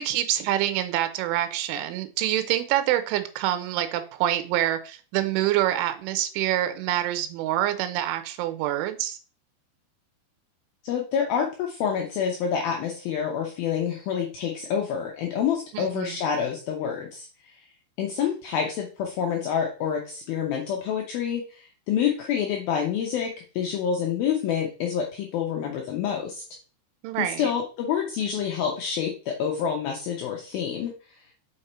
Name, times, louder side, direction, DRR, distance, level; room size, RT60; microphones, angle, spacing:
voice 1, 0.0-9.2 15.7-16.2 27.0-27.5, right 13 dB, 80° right, 3.2 m, -26 dB
voice 2, 10.8-17.3 18.0-26.4 27.2-30.9, left 7 dB, 90° left, 2.1 m, -27 dB
6.6 x 5.3 x 4.3 m
omnidirectional pair, 5.7 m